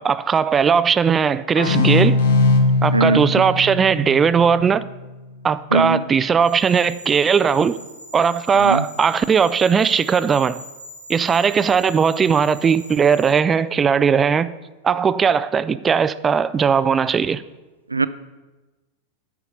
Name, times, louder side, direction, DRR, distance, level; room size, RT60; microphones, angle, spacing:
voice 1, 0.0-2.2 2.8-4.8 5.4-7.8 8.1-10.6 11.1-14.5 14.8-17.4, right 6 dB, 20° right, 0.4 m, -18 dB
sound 1, 1.6-5.0, left 3 dB, 65° left, 1.3 m, -20 dB
voice 2, 2.9-3.2 5.7-6.0 8.6-8.8 17.9-18.1, right 3 dB, 80° right, 0.4 m, -19 dB
sound 2, 6.4-13.3, equal, 65° right, 1.6 m, -42 dB
9.5 x 5.8 x 7.8 m
figure-of-eight pair, 90°, 0 cm